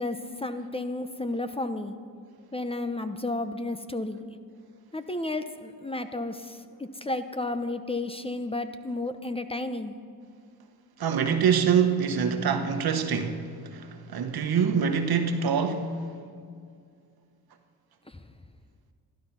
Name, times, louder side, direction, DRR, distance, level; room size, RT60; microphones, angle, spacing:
voice 1, 0.0-1.9 2.5-4.2 4.9-10.0, left 2 dB, 15° left, 0.8 m, -32 dB
voice 2, 11.0-13.4 13.7-15.9, right 7 dB, 70° right, 1.3 m, -25 dB
13.5 x 12.0 x 5.7 m
cardioid pair, 65°, 39 cm